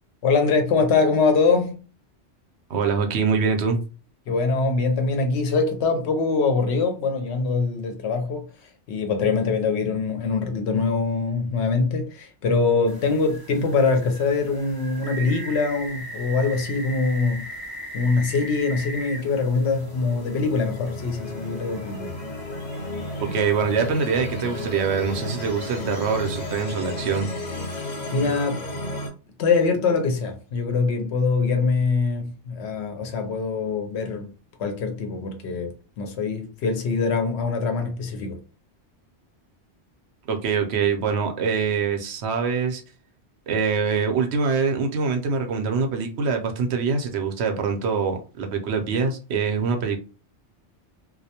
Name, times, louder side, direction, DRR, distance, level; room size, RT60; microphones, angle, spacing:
voice 1, 0.2-1.8 4.3-17.5 17.9-22.1 27.8-28.7 29.4-34.3 34.6-38.4, left 4 dB, 75° left, 0.8 m, -23 dB
voice 2, 2.7-3.8 23.2-27.3 40.3-42.8 43.5-50.0, right 5 dB, 70° right, 0.8 m, -24 dB
sound 1, 12.9-26.6, right 1 dB, 40° right, 0.3 m, -41 dB
sound 2, 19.1-29.1, left 1 dB, 40° left, 0.9 m, -33 dB
2.3 x 2.1 x 2.8 m
omnidirectional pair, 1.2 m